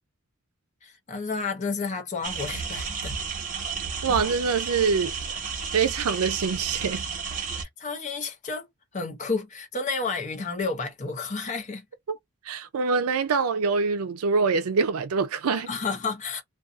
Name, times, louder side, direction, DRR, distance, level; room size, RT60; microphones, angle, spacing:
voice 1, 0.8-3.1 7.6-8.7 8.9-11.8 15.7-16.4, left 4 dB, 35° left, 0.6 m, -31 dB
sound 1, 2.2-7.6, right 5 dB, 35° right, 0.8 m, -32 dB
voice 2, 4.0-5.1 5.7-7.0 12.4-15.7, right 5 dB, 90° right, 0.4 m, -24 dB
2.5 x 2.3 x 2.4 m
head